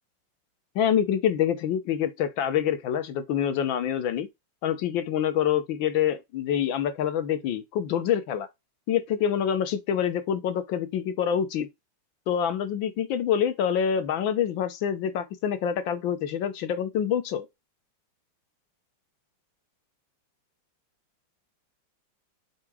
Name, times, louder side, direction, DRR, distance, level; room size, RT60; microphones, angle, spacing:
voice 1, 0.7-4.3 4.6-8.5 8.9-11.7 12.3-17.5, left 9 dB, 75° left, 1.7 m, -26 dB
7.3 x 2.9 x 4.7 m
omnidirectional pair, 2.1 m